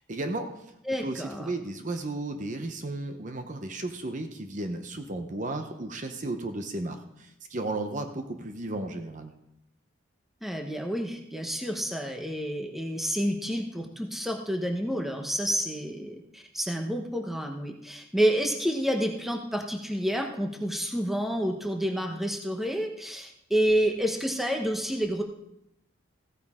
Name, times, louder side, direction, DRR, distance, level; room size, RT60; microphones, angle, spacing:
voice 1, 0.1-0.6 1.0-9.3, right 2 dB, 40° right, 6 dB, 0.8 m, -34 dB
voice 2, 0.9-1.5 10.4-25.2, equal, ahead, 3 dB, 0.9 m, -29 dB
15.0 x 9.3 x 3.6 m, 0.80 s
head